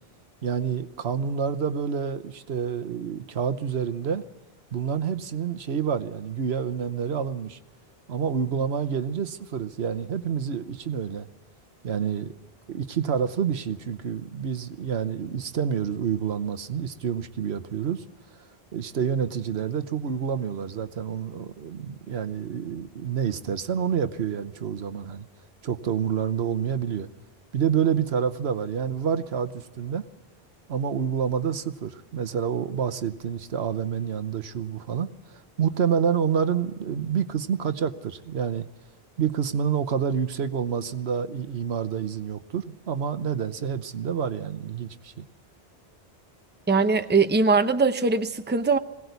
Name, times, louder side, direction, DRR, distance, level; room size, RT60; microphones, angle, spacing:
voice 1, 0.4-4.2 4.7-7.6 8.1-11.3 11.8-12.3 12.7-18.0 18.7-25.3 25.6-27.1 27.5-30.0 30.7-38.7 39.2-45.3, right 7 dB, 85° right, 9 dB, 1.2 m, -28 dB
voice 2, 46.7-48.8, right 4 dB, 10° right, 9 dB, 0.7 m, -21 dB
21.5 x 17.5 x 8.1 m, 1.2 s
omnidirectional pair, 1.0 m